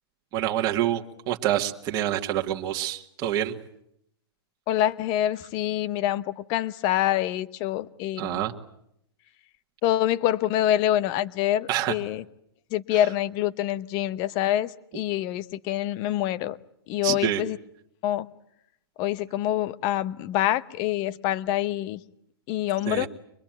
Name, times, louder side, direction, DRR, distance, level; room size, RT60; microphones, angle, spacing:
voice 1, 0.3-3.5 8.2-8.5 11.7-11.9 12.9-13.0 17.0-17.4 22.9-23.1, right 12 dB, 30° right, 2 dB, 1.9 m, -27 dB
voice 2, 4.7-8.4 9.8-12.2 12.7-16.6 16.9-17.6 18.0-18.3 19.0-22.0 22.5-23.1, left 13 dB, 35° left, 16 dB, 1.0 m, -26 dB
24.0 x 21.5 x 9.1 m, 0.75 s
hypercardioid pair, 150°, 13 cm